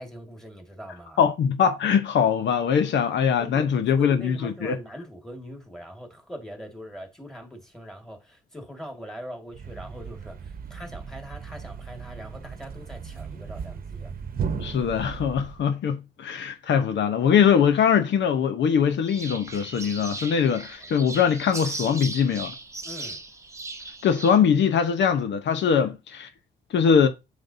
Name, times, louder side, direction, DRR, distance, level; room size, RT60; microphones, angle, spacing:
voice 1, 0.0-1.3 3.4-3.7 4.0-14.1 22.8-23.2 25.7-25.9, equal, 5° left, 2.0 m, -41 dB
voice 2, 1.2-4.8 14.6-22.5 24.0-26.3 26.7-27.1, left 7 dB, 70° left, 0.9 m, -22 dB
Thump thud, 9.5-15.7, right 6 dB, 50° right, 1.0 m, -36 dB
sound 1, 19.0-24.4, right 2 dB, 15° right, 0.9 m, -37 dB
7.7 x 5.3 x 2.7 m
cardioid pair, 95°, 20 cm